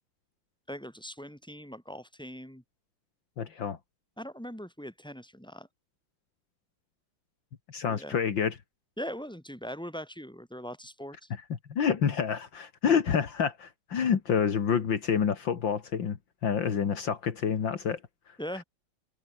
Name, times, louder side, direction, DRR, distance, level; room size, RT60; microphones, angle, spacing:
voice 1, 0.7-2.6 4.2-5.7 7.9-8.2 9.0-11.3 18.4-18.6, equal, ahead, 7.7 m, -40 dB
voice 2, 3.4-3.8 7.7-8.6 11.7-16.2 16.4-18.0, left 7 dB, 70° left, 2.5 m, -28 dB
omnidirectional pair, 2.2 m